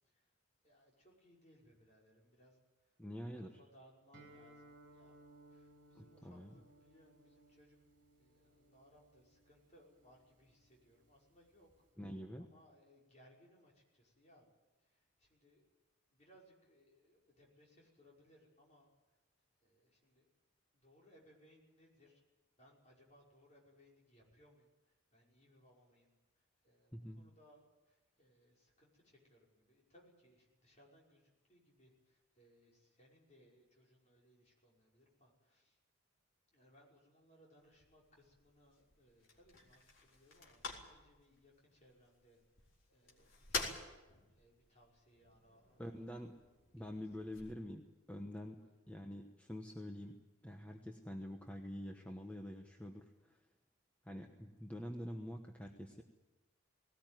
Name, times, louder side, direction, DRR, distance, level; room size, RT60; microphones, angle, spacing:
voice 1, 0.6-3.0 3.4-5.2 5.5-7.8 8.2-11.9 12.4-14.4 14.8-15.6 16.1-19.2 19.6-20.3 20.7-22.2 22.6-26.1 26.4-35.8 36.5-46.1 46.8-47.0 48.5-48.7, equal, 35° left, -2 dB, 5.7 m, -67 dB
voice 2, 3.0-3.6 5.9-6.5 12.0-12.5 26.9-27.2 45.8-46.3 46.7-47.8 48.1-48.6 48.9-50.1 50.4-53.4 54.0-56.0, equal, 5° left, 2 dB, 1.1 m, -46 dB
Guitar, 4.1-11.9, right 1 dB, 45° right, 6.1 m, -64 dB
sound 1, 37.6-47.5, left 4 dB, 75° left, 3.9 m, -49 dB
19.5 x 18.5 x 9.3 m, 1.1 s
head